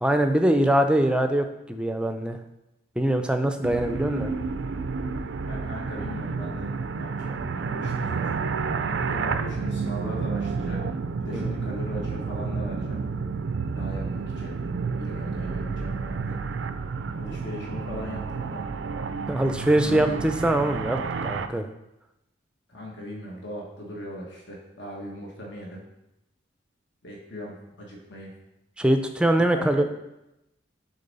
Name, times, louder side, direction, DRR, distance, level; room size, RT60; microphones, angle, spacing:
voice 1, 0.0-2.4 3.0-4.3 11.3-11.5 19.3-21.7 28.8-29.9, right 1 dB, 5° right, 6 dB, 0.5 m, -23 dB
sound 1, 3.6-21.5, right 4 dB, 70° right, 0.4 m, -30 dB
voice 2, 5.5-8.3 8.9-10.8 11.2-13.0 13.7-14.6 15.0-16.4 17.1-18.7 19.9-20.1 22.7-25.8 27.0-28.3 29.4-29.9, equal, 65° left, -2 dB, 1.3 m, -38 dB
6.9 x 4.1 x 5.4 m, 0.90 s
head